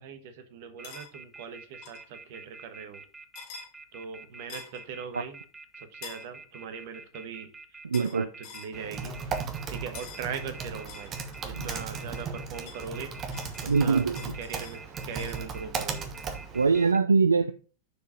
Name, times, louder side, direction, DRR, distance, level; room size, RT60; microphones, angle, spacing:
voice 1, 0.0-3.0 3.9-5.4 5.8-16.1, right 6 dB, 50° right, 1.2 m, -41 dB
sound 1, 0.8-1.1 1.8-2.0 3.3-3.7 4.5-4.8 6.0-6.3 7.9-8.2 8.4-8.7 9.9-10.3 10.9-12.3 12.7-15.4, left 6 dB, 45° left, 1.8 m, -46 dB
sound 2, 0.8-17.0, right 3 dB, 10° right, 0.7 m, -47 dB
voice 2, 7.8-8.3 11.5-11.7 13.7-14.2 16.5-17.5, right 4 dB, 75° right, 0.4 m, -23 dB
Typing, 8.7-16.9, right 5 dB, 30° right, 1.2 m, -37 dB
6.8 x 4.8 x 4.9 m
figure-of-eight pair, 90°, 0 cm